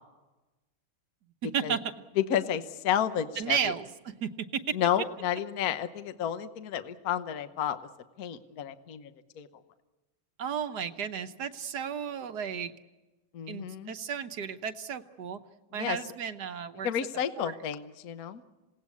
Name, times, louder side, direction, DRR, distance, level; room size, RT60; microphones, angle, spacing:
voice 1, 2.2-3.7 4.7-7.8 8.2-9.1 9.4-9.5 13.3-13.9 15.7-16.0 16.8-18.5, left 9 dB, 55° left, 10 dB, 1.3 m, -31 dB
voice 2, 3.4-4.8 10.4-12.7 13.5-15.4 15.7-16.9 17.4-17.5, right 7 dB, 60° right, 9 dB, 1.3 m, -33 dB
27.5 x 18.0 x 8.4 m, 1.1 s
omnidirectional pair, 2.3 m